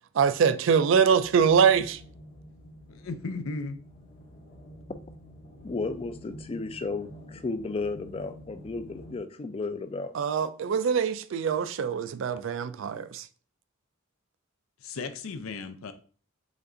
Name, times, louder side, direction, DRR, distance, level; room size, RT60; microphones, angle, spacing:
voice 1, 0.1-2.0 10.1-13.3, right 6 dB, 65° right, 0.3 m, -23 dB
sound 1, 1.0-9.2, equal, 45° left, 0.8 m, -48 dB
voice 2, 2.9-3.8 14.8-15.9, left 3 dB, 85° left, 0.5 m, -35 dB
voice 3, 5.6-10.1, left 3 dB, 25° left, 0.3 m, -33 dB
5.2 x 2.5 x 3.8 m
head